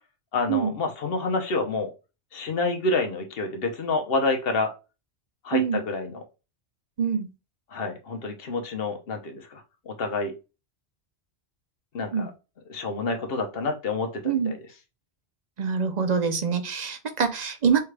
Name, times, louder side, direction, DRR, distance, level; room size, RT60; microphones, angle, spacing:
voice 1, 0.3-1.9 2.3-4.7 5.4-6.2 7.7-10.3 11.9-12.3 12.7-14.7, left 3 dB, 60° left, 4 dB, 1.1 m, -28 dB
voice 2, 15.6-17.8, right 6 dB, 45° right, 7 dB, 0.7 m, -24 dB
5.6 x 2.4 x 3.3 m, 0.29 s
omnidirectional pair, 1.1 m